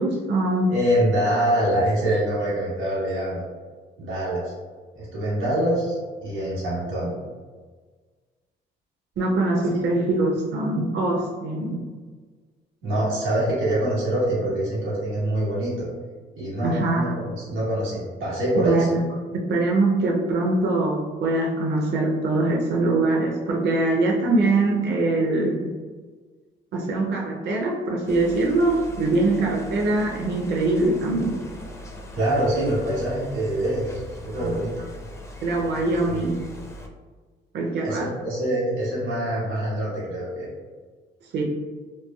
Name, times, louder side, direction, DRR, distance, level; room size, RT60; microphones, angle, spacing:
voice 1, 0.0-0.7 9.2-11.9 16.6-17.0 18.6-19.1 19.3-25.7 26.7-31.4 34.3-34.5 35.4-36.4 37.5-38.1 41.3-41.4, right 2 dB, 60° right, -1 dB, 0.5 m, -23 dB
voice 2, 0.7-3.4 4.0-4.5 4.9-7.1 9.7-9.8 12.8-15.9 16.3-18.9 32.1-34.7 36.1-36.2 37.8-40.5, right 1 dB, 85° right, -9 dB, 1.3 m, -25 dB
sound 1, 28.1-36.9, left 1 dB, 15° left, 0.4 m, -40 dB
3.1 x 2.3 x 2.2 m, 1.5 s
cardioid pair, 90°, 20 cm